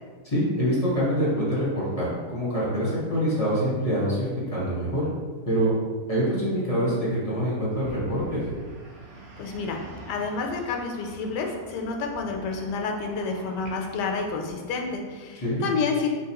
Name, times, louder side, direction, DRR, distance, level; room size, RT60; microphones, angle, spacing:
voice 1, 0.2-5.0 5.4-5.7 6.1-8.4 15.4-15.6, equal, 25° left, -8 dB, 0.9 m, -25 dB
sound 1, 7.8-15.0, right 1 dB, 85° right, 1.4 m, -45 dB
voice 2, 9.4-16.1, left 4 dB, 80° left, 2 dB, 1.2 m, -29 dB
4.1 x 3.1 x 2.9 m, 1.5 s
omnidirectional pair, 1.8 m